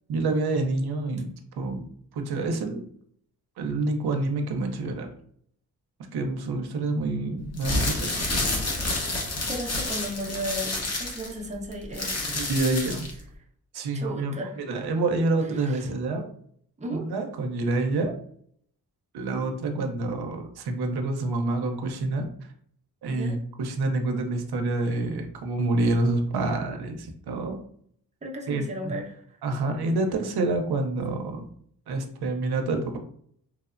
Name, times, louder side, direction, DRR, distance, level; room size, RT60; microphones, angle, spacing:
voice 1, 0.1-1.3 1.6-1.9 2.1-2.8 3.6-5.1 6.1-8.2 12.3-13.1 13.7-16.3 16.9-18.1 19.1-22.3 23.0-27.6 28.5-29.0 29.4-31.5 31.9-33.0, right 2 dB, 80° right, 4 dB, 0.6 m, -27 dB
sound 1, 7.5-13.2, left 2 dB, 40° left, 0.8 m, -29 dB
voice 2, 9.5-12.4 13.9-14.6 15.6-15.9 16.8-17.1 23.1-23.4 28.2-29.2, equal, 20° right, 0 dB, 0.5 m, -35 dB
3.0 x 2.0 x 2.4 m, 0.63 s
cardioid pair, 70°, 38 cm